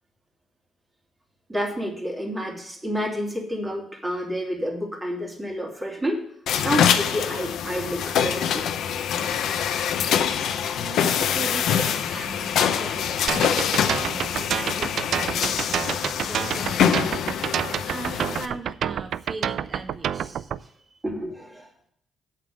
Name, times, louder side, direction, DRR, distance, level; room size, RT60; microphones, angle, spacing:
voice 1, 1.5-6.3 6.6-8.7 9.2-9.4 21.0-21.9, equal, 15° right, 0 dB, 2.8 m, -29 dB
sound 1, 6.5-18.5, left 8 dB, 75° left, 0.8 m, -24 dB
voice 2, 10.7-21.0, right 3 dB, 35° right, 5 dB, 1.8 m, -39 dB
sound 2, 13.3-20.6, right 9 dB, 70° right, 0.4 m, -28 dB
8.2 x 6.0 x 7.8 m, 0.68 s
cardioid pair, 90°, 0 cm